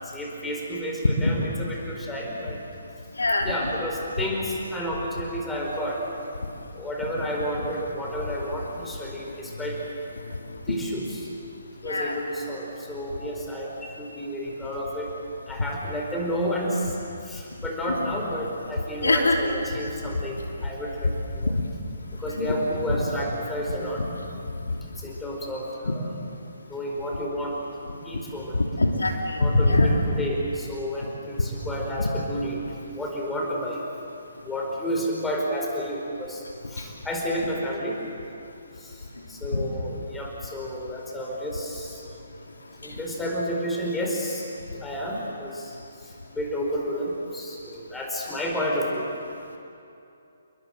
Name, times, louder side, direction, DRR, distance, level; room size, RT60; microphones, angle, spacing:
voice 1, 0.0-2.6 3.4-6.2 6.7-9.8 10.7-11.3 11.8-15.1 15.5-17.0 17.2-21.5 22.2-24.0 25.0-26.1 26.7-27.6 28.0-28.6 29.4-32.6 32.9-33.8 34.4-38.0 38.8-42.1 42.8-44.4 44.7-45.7 46.0-49.1, equal, 5° left, -2 dB, 4.5 m, -31 dB
voice 2, 3.2-3.5 8.2-8.5 11.8-12.2 18.0-18.1 19.0-19.4 21.5-21.6 22.3-22.5 22.9-23.0 23.7-23.8 24.7-24.8 28.8-30.0 32.0-32.1 39.5-39.6, left 2 dB, 70° left, 2 dB, 3.1 m, -23 dB
29.5 x 22.0 x 7.9 m, 2.7 s
figure-of-eight pair, 135°, 0 cm